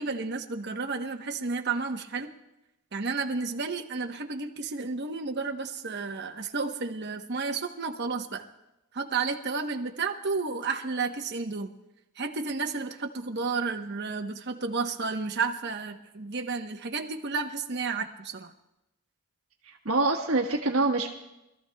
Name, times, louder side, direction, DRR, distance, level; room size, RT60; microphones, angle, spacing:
voice 1, 0.0-2.3 2.9-8.4 8.9-11.7 12.2-18.5, right 4 dB, 50° right, 4 dB, 1.0 m, -32 dB
voice 2, 19.7-21.1, right 2 dB, 70° right, 0 dB, 1.4 m, -25 dB
25.5 x 14.0 x 2.3 m, 0.92 s
head